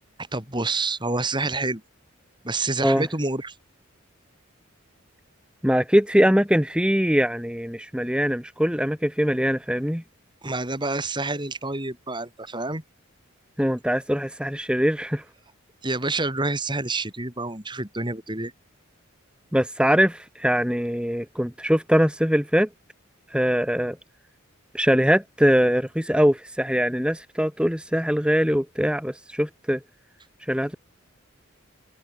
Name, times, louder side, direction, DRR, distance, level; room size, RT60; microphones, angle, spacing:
voice 1, 0.3-1.8 2.4-3.5 10.4-12.8 15.8-18.5, right 2 dB, 20° right, 4.0 m, -28 dB
voice 2, 5.6-10.0 13.6-15.2 19.5-22.7 23.3-24.0 24.7-29.8 30.5-30.8, equal, 5° right, 3.2 m, -22 dB
head